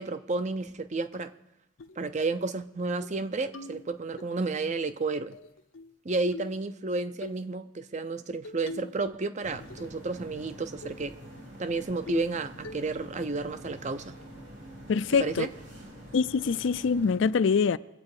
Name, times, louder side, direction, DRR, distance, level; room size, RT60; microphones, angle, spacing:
voice 1, 0.0-1.3 2.0-5.3 6.0-11.2 11.6-14.1 15.2-15.5, right 3 dB, 35° right, 0.6 m, -31 dB
sound 1, 1.1-1.2 1.8-2.0 2.4-2.5 2.8-3.2 3.5-4.3 5.3-5.9 6.3-6.6 7.2-7.4 8.4-9.0 9.3-10.0 10.4-10.5 10.8-11.0 11.5-11.6 12.1-12.4 12.6-13.1, left 2 dB, 85° left, 0.8 m, -44 dB
sound 2, 9.4-17.2, equal, 65° right, 4.1 m, -46 dB
voice 2, 14.9-15.5 16.1-17.8, left 5 dB, 70° left, 0.4 m, -24 dB
23.0 x 8.3 x 4.9 m
head